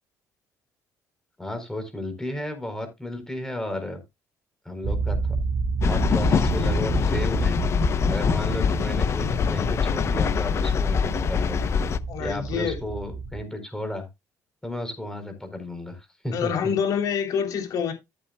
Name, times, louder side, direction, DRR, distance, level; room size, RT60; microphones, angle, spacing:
voice 1, 1.4-4.0 4.6-5.4 5.9-7.6 8.1-11.7 12.2-14.1 14.6-16.5, left 1 dB, 10° left, 4.4 m, -33 dB
sound 1, 4.8-13.4, right 4 dB, 45° right, 2.8 m, -30 dB
sound 2, 5.8-12.0, left 7 dB, 45° left, 0.8 m, -24 dB
voice 2, 8.0-8.5 12.1-12.8 16.3-17.9, left 7 dB, 65° left, 3.6 m, -27 dB
13.5 x 8.7 x 2.3 m
cardioid pair, 100°, 7 cm